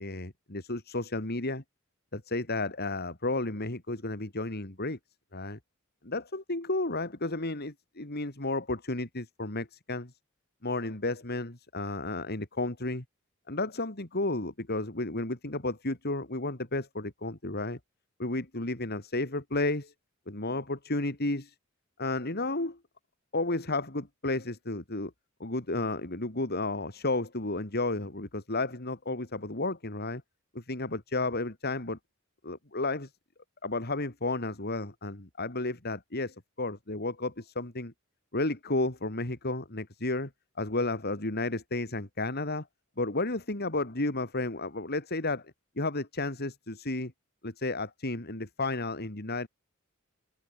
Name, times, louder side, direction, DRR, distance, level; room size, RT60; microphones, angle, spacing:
voice 1, 0.0-1.6 2.1-5.0 5.3-5.6 6.0-10.1 10.6-13.0 13.5-17.8 18.2-19.9 20.3-21.5 22.0-22.8 23.3-25.1 25.4-30.2 30.5-32.0 32.4-33.1 33.6-37.9 38.3-40.3 40.6-42.7 43.0-47.1 47.4-49.5, left 2 dB, 50° left, 3.4 m, -32 dB
head